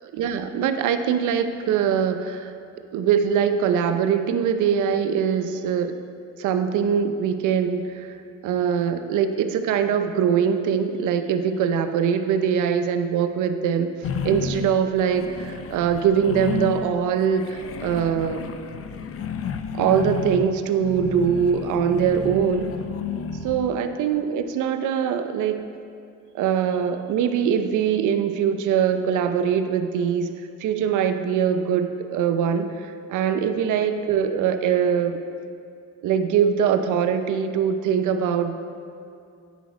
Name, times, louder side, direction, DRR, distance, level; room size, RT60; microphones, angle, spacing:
voice 1, 0.1-2.5 2.9-5.9 6.4-8.1 8.4-13.9 14.2-18.4 19.7-22.7 23.4-25.6 26.3-30.3 30.6-35.2 36.0-38.5, right 7 dB, 80° right, 8 dB, 0.6 m, -22 dB
sound 1, 14.0-17.0 17.3-23.8, left 6 dB, 50° left, 0.6 m, -32 dB
9.1 x 5.0 x 5.1 m, 2.4 s
cardioid pair, 90°, 30 cm